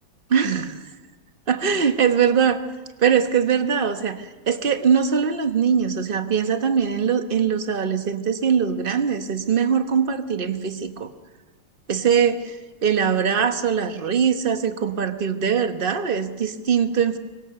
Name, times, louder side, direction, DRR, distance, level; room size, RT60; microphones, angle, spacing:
voice 1, 0.3-0.9 1.5-2.6 3.0-11.1 11.9-12.6 12.8-17.2, right 7 dB, 35° right, 8 dB, 1.1 m, -22 dB
24.5 x 23.5 x 6.7 m, 1.3 s
omnidirectional pair, 2.2 m